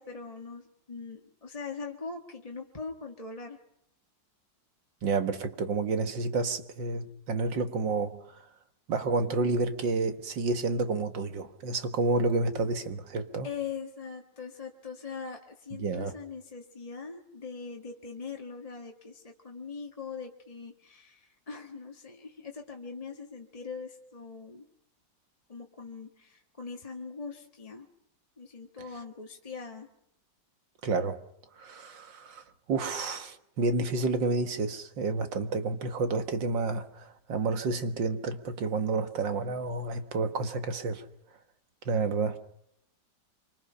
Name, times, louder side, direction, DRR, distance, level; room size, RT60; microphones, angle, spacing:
voice 1, 0.0-3.6 13.4-24.7 25.5-27.9 28.4-29.9, left 5 dB, 20° left, 1.7 m, -41 dB
voice 2, 5.0-8.4 8.9-13.5 15.8-16.2 30.8-31.2 31.6-41.1 41.9-42.4, right 3 dB, 75° right, 2.2 m, -30 dB
27.0 x 25.0 x 5.7 m
omnidirectional pair, 2.0 m